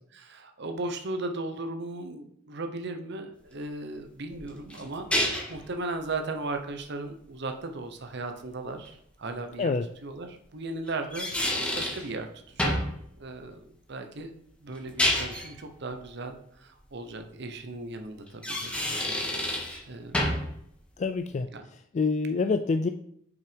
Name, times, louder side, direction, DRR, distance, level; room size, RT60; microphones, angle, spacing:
voice 1, 0.1-12.8 13.2-19.4 19.9-20.3 21.5-21.7, right 2 dB, 60° right, 6 dB, 0.9 m, -37 dB
sound 1, 4.3-5.6 8.8-8.9 10.9-12.1 12.6-12.9 14.8-15.5 18.3-19.8 20.1-20.5, left 1 dB, 5° left, 1.6 m, -28 dB
voice 2, 21.0-21.5 21.9-22.9, left 4 dB, 35° left, 8 dB, 0.3 m, -26 dB
6.6 x 5.7 x 5.1 m, 0.69 s
head